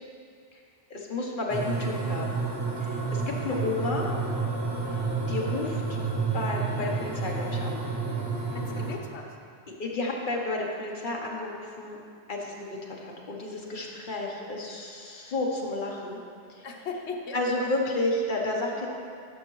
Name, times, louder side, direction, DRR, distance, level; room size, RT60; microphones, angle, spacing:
voice 1, 0.9-2.4 2.8-4.1 5.3-6.0 6.3-7.8 9.8-12.0 12.3-16.2 16.5-16.6 17.3-18.9, left 2 dB, 50° left, -1 dB, 1.1 m, -31 dB
sound 1, 1.5-8.9, right 4 dB, 25° right, 0.8 m, -30 dB
voice 2, 8.5-9.3 16.6-17.7 18.7-18.8, left 4 dB, 85° left, 1 dB, 1.1 m, -38 dB
11.5 x 5.8 x 3.1 m, 2.3 s
omnidirectional pair, 1.1 m